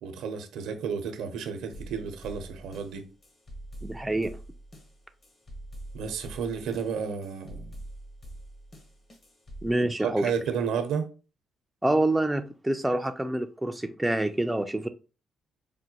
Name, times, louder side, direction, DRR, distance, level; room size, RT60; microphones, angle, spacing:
voice 1, 0.0-3.1 5.9-7.8 10.0-11.1, right 6 dB, 85° right, 0.7 m, -32 dB
sound 1, 1.7-9.7, right 1 dB, 40° left, 1.1 m, -45 dB
voice 2, 3.8-4.4 9.6-10.3 11.8-14.9, right 1 dB, 10° right, 0.4 m, -27 dB
4.9 x 2.2 x 2.9 m
cardioid pair, 90°, 0 cm